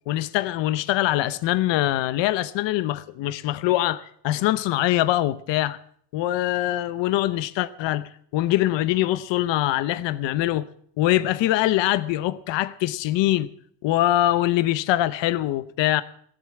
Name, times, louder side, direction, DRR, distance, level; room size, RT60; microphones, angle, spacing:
voice 1, 0.1-5.8 6.1-10.7 11.0-13.5 13.8-16.0, left 15 dB, 70° left, 0.8 m, -23 dB
17.0 x 8.1 x 8.3 m
cardioid pair, 165°, 46 cm